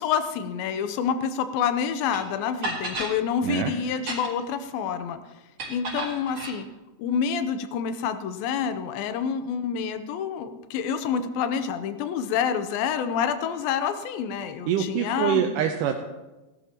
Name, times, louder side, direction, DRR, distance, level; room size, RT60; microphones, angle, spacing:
voice 1, 0.0-5.2 5.7-6.7 7.0-15.4, left 7 dB, 90° left, 9 dB, 2.5 m, -28 dB
sound 1, 2.1-2.2 2.6-3.2 3.9-4.5 5.6-6.6, right 2 dB, 45° right, 4.5 m, -32 dB
voice 2, 3.4-3.7 14.7-16.0, right 9 dB, 80° right, 4 dB, 2.2 m, -25 dB
18.0 x 12.5 x 2.9 m, 1.1 s
omnidirectional pair, 4.1 m